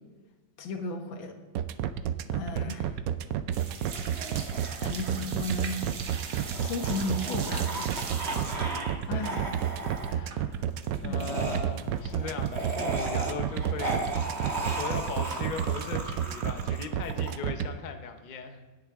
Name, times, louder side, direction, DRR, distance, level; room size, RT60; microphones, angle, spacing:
voice 1, 0.6-1.3 2.3-2.9 4.8-5.8 6.6-7.8 9.1-9.5 11.0-11.2, left 3 dB, 80° left, 5 dB, 1.9 m, -34 dB
sound 1, 1.5-17.7, right 10 dB, 75° right, 0.8 m, -30 dB
voice 2, 2.5-3.1 8.9-9.4 10.1-10.6 11.0-14.0 14.3-18.6, left 5 dB, 45° left, 6 dB, 0.6 m, -39 dB
sound 2, 3.5-11.5 11.8-12.6 12.9-13.0 13.4-13.5 13.7-14.0 14.7-15.3 15.6-16.3, right 6 dB, 60° right, 1.4 m, -42 dB
sound 3, 3.9-9.0 9.2-10.1 11.2-17.3, right 2 dB, 40° right, 1.4 m, -36 dB
18.5 x 6.6 x 3.6 m, 1.4 s
omnidirectional pair, 2.0 m